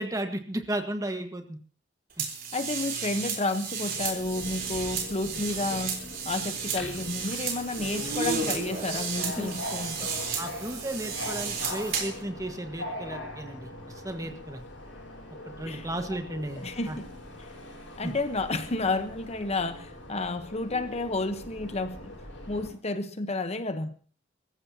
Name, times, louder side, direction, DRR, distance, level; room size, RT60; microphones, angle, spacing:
voice 1, 0.0-1.6 9.4-9.5 10.4-13.7 14.0-14.6 15.4-17.0 18.0-18.1, right 1 dB, 20° right, 6 dB, 1.5 m, -34 dB
sound 1, 2.2-12.2, right 5 dB, 50° right, 3.7 m, -33 dB
voice 2, 2.5-10.2 14.2-14.4 15.7-15.9 16.6-17.1 17.4-17.5 18.0-22.1 22.5-24.0, left 2 dB, 35° left, 9 dB, 1.0 m, -31 dB
Subway metro underground, 3.9-22.7, left 1 dB, 70° left, 6.3 m, -42 dB
23.5 x 14.5 x 2.9 m, 0.40 s
head